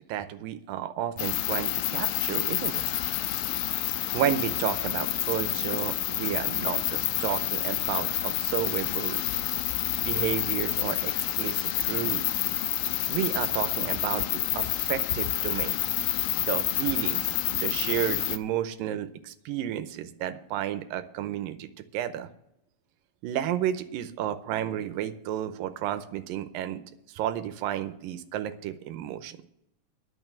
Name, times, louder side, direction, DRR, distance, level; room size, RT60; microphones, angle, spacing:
voice 1, 0.1-2.8 4.1-9.2 10.1-12.3 13.1-15.8 16.4-22.3 23.2-26.8 27.1-29.4, right 11 dB, 90° right, 10 dB, 2.4 m, -32 dB
sound 1, 1.2-18.4, left 14 dB, 90° left, 2.3 m, -28 dB
11.0 x 6.4 x 9.1 m, 0.79 s
omnidirectional pair, 4.0 m